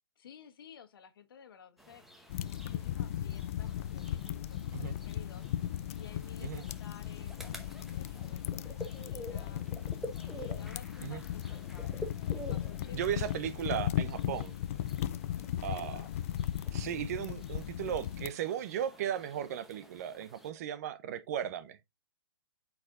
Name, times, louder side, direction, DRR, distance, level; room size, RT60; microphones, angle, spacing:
voice 1, 0.2-2.0 2.4-5.5 5.9-9.6 10.3-13.0 15.4-16.1, left 8 dB, 60° left, 1.4 m, -54 dB
sound 1, 1.8-20.5, equal, ahead, 0.9 m, -50 dB
sound 2, 2.3-18.3, left 11 dB, 35° left, 0.3 m, -37 dB
voice 2, 12.9-14.5 15.6-16.0 16.7-21.8, right 10 dB, 40° right, 0.7 m, -36 dB
8.3 x 4.8 x 2.5 m
hypercardioid pair, 155°, 13 cm